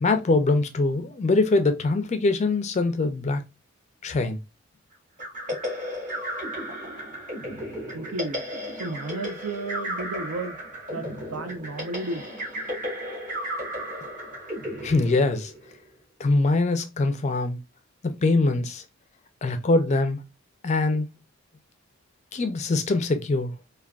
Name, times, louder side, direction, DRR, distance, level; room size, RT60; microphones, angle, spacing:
voice 1, 0.0-3.4 4.0-4.4 14.8-15.5 16.2-17.6 18.0-18.8 19.4-20.2 20.6-21.1 22.3-23.5, left 3 dB, 30° left, 0.3 m, -23 dB
sound 1, 5.2-15.8, equal, 35° right, 1.0 m, -34 dB
voice 2, 7.9-8.4 8.7-10.6 10.9-12.3, right 2 dB, 85° right, 0.5 m, -33 dB
3.4 x 2.2 x 2.3 m
head